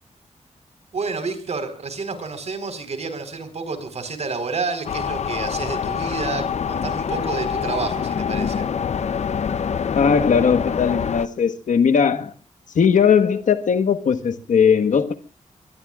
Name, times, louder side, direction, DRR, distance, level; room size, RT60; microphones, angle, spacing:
voice 1, 0.9-8.7, right 4 dB, 60° right, 4.5 m, -29 dB
sound 1, 4.9-11.3, left 7 dB, 60° left, 0.7 m, -25 dB
voice 2, 9.9-12.3 12.7-15.1, left 6 dB, 80° left, 1.5 m, -18 dB
24.5 x 22.0 x 2.5 m
wide cardioid pair, 100°, 13 cm